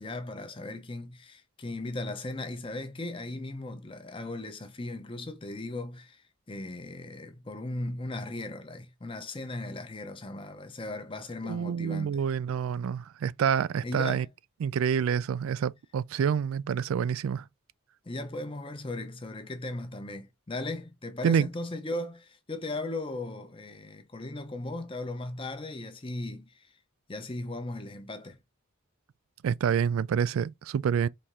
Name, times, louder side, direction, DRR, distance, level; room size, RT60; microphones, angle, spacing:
voice 1, 0.0-6.2 6.5-12.2 13.8-14.3 18.0-26.7 27.1-28.4, left 2 dB, 25° left, 0.7 m, -37 dB
voice 2, 11.4-14.3 14.6-17.4 21.2-21.5 29.4-31.1, right 7 dB, 80° right, 0.3 m, -27 dB
4.3 x 3.2 x 3.6 m
head